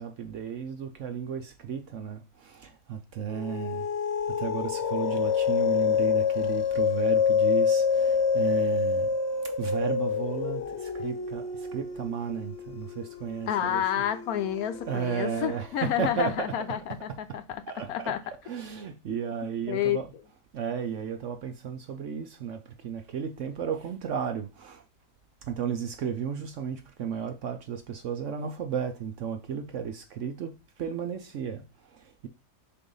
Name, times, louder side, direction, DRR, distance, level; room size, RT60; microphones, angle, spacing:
voice 1, 0.0-3.9 4.4-13.8 14.9-17.4 17.7-18.2 18.4-24.8 25.4-32.3, right 7 dB, 65° right, 0.8 m, -34 dB
sound 1, 3.3-16.1, left 6 dB, 45° left, 1.0 m, -28 dB
voice 2, 13.5-18.2 19.7-20.0, left 10 dB, 70° left, 1.1 m, -29 dB
6.9 x 2.6 x 5.4 m
omnidirectional pair, 1.8 m